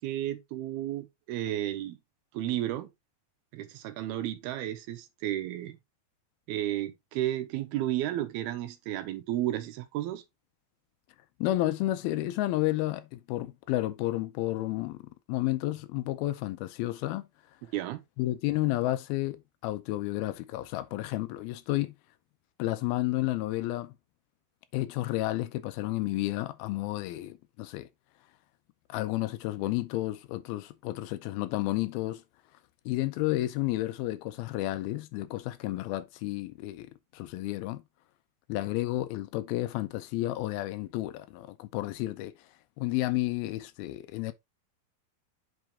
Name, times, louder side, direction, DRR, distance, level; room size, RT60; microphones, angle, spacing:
voice 1, 0.0-2.0 2.3-2.9 3.5-5.8 6.5-10.2 17.7-18.0, right 13 dB, 85° right, 2.8 m, -32 dB
voice 2, 11.4-17.3 18.2-21.9 22.6-23.9 24.7-27.9 28.9-32.2 32.9-37.8 38.5-42.3 42.8-44.3, left 16 dB, 80° left, 2.4 m, -31 dB
7.9 x 4.6 x 3.5 m
omnidirectional pair, 4.5 m